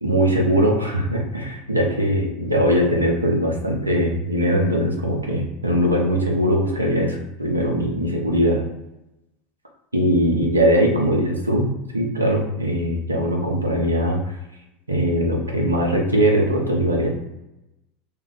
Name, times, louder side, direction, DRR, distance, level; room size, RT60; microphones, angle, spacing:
voice 1, 0.0-8.6 9.9-14.4 14.9-17.1, equal, 85° right, 0 dB, 0.5 m, -21 dB
2.4 x 2.2 x 3.6 m, 0.91 s
figure-of-eight pair, 75°, 0 cm